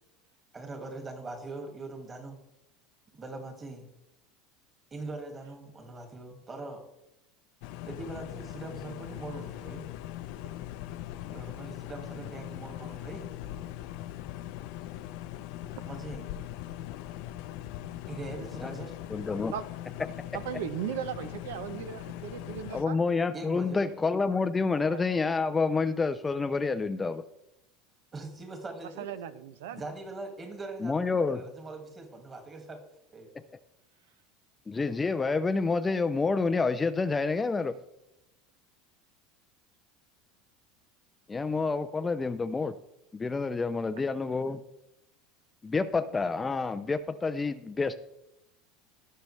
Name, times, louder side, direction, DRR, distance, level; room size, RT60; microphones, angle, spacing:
voice 1, 0.5-2.4 3.1-3.9 4.9-6.8 7.8-9.8 11.3-13.3 15.8-16.4 18.1-18.9 23.3-23.8 28.1-29.1 29.7-32.8 33.1-33.3, right 2 dB, 20° right, 5 dB, 1.9 m, -41 dB
sound 1, 7.6-22.8, left 13 dB, 60° left, 0.6 m, -41 dB
voice 2, 19.1-19.5 22.7-27.2 30.8-31.4 34.7-37.8 41.3-42.7 43.1-44.6 45.6-48.0, left 4 dB, 15° left, 11 dB, 0.4 m, -28 dB
voice 3, 20.3-23.0 24.9-25.0 29.0-29.8, right 9 dB, 85° right, 13 dB, 0.7 m, -37 dB
18.5 x 6.5 x 3.2 m, 0.88 s
supercardioid pair, 150°, 0 cm